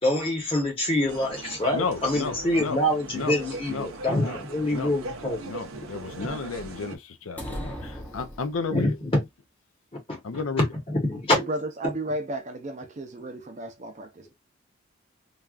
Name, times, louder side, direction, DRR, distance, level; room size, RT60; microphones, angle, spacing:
voice 1, 0.0-5.8 7.9-8.0 8.7-9.2 10.1-10.4 10.9-11.3 11.8-11.9, left 1 dB, 25° left, 1.1 m, -26 dB
sound 1, 1.1-7.0, right 2 dB, 80° right, 0.6 m, -39 dB
voice 2, 1.7-2.8 3.1-3.4 3.7-3.9 4.2-4.4 4.7-4.9 5.5-9.0 10.2-10.7, left 4 dB, 75° left, 0.5 m, -32 dB
sound 2, 7.4-9.0, equal, 10° left, 0.6 m, -37 dB
voice 3, 11.3-14.3, right 1 dB, 35° right, 0.5 m, -33 dB
3.3 x 2.3 x 2.4 m
head